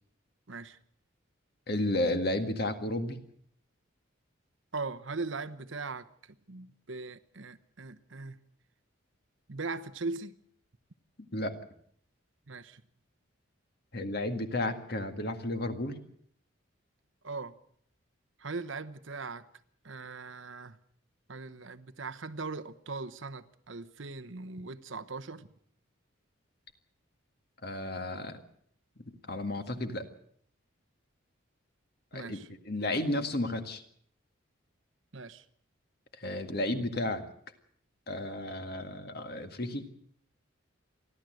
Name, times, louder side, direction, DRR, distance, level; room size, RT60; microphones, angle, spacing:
voice 1, 0.5-0.8 4.7-8.4 9.5-10.4 12.5-12.8 17.2-17.5 18.4-19.5 19.8-20.8 21.3-25.5 32.1-32.5 35.1-35.4, right 3 dB, 70° right, 12 dB, 1.0 m, -40 dB
voice 2, 1.7-3.2 11.3-11.6 13.9-16.0 27.6-28.4 29.0-30.1 32.1-32.4 32.6-33.8 36.2-37.2 38.1-39.9, left 1 dB, 50° left, 7 dB, 2.0 m, -32 dB
29.5 x 12.5 x 7.8 m, 0.62 s
head